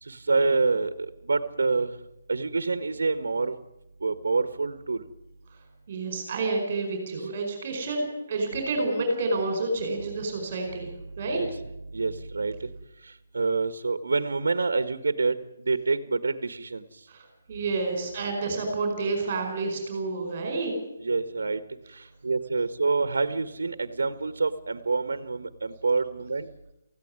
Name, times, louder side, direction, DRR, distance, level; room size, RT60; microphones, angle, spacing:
voice 1, 0.0-1.9 2.3-3.5 4.0-5.1 11.0-11.6 11.8-12.7 13.0-16.9 21.0-21.6 21.9-26.5, right 4 dB, 90° right, 11 dB, 1.6 m, -27 dB
voice 2, 5.9-10.9 11.2-11.4 17.1-20.7, right 3 dB, 30° right, 4 dB, 4.9 m, -29 dB
18.5 x 15.5 x 9.7 m, 0.88 s
hypercardioid pair, 175°, 0 cm